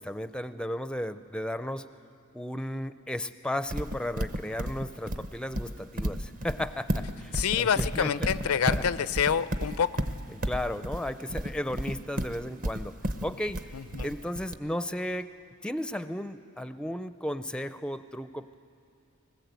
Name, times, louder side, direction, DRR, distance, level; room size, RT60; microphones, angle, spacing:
voice 1, 0.0-1.8 2.3-8.8 10.3-12.9 13.2-13.7 14.0-15.3 15.6-18.5, left 1 dB, 5° left, 12 dB, 0.4 m, -34 dB
Livestock farm animals working animals, 3.7-14.5, equal, 40° right, 0.8 m, -32 dB
voice 2, 7.3-10.1 13.7-14.1, left 7 dB, 85° left, 15 dB, 0.5 m, -27 dB
20.5 x 20.0 x 8.1 m, 2.5 s
head